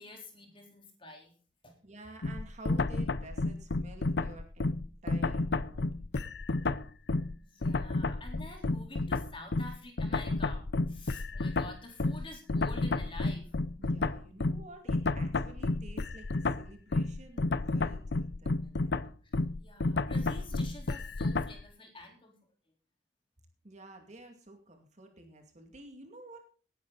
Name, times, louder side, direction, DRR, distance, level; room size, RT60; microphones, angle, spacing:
voice 1, 0.0-1.3 1.6-1.7 7.4-10.6 10.9-13.5 19.2-22.3, left 2 dB, 30° left, 2 dB, 4.0 m, -48 dB
voice 2, 1.8-5.9 8.0-8.1 13.8-19.0 23.6-26.4, right 2 dB, 40° right, 4 dB, 2.4 m, -51 dB
sound 1, 2.2-7.4 7.6-21.6, left 2 dB, 60° left, 0.6 m, -31 dB
19.0 x 10.5 x 4.1 m, 0.41 s
head